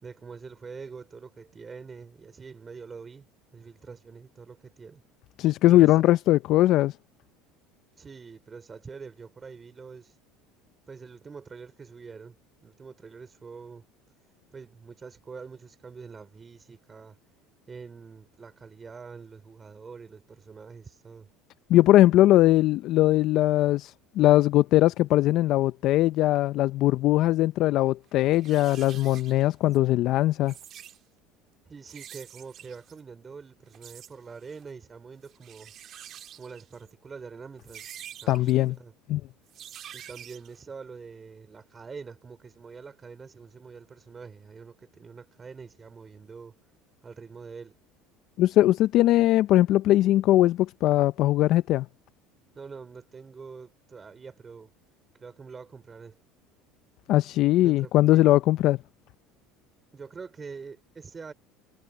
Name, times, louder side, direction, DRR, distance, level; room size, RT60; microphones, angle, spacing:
voice 1, 0.0-3.3 3.5-5.0 5.7-6.1 8.0-10.2 10.9-12.4 12.6-13.8 14.5-17.2 17.7-21.3 31.6-35.7 36.4-38.9 39.9-46.6 47.0-47.8 52.5-54.7 55.1-56.2 57.6-58.4 59.9-61.3, right 5 dB, 25° right, 3.9 m, -45 dB
voice 2, 5.4-7.0 21.7-30.5 38.3-38.7 39.1-39.2 48.4-51.9 57.1-58.8, left 15 dB, 60° left, 0.5 m, -20 dB
sound 1, 27.9-28.0 28.3-29.8 30.3-31.0 31.9-33.0 33.7-34.1 34.4-34.7 35.2-36.9 37.6-38.5 39.5-40.6, right 10 dB, 50° right, 1.6 m, -47 dB
supercardioid pair, 95°, 0 cm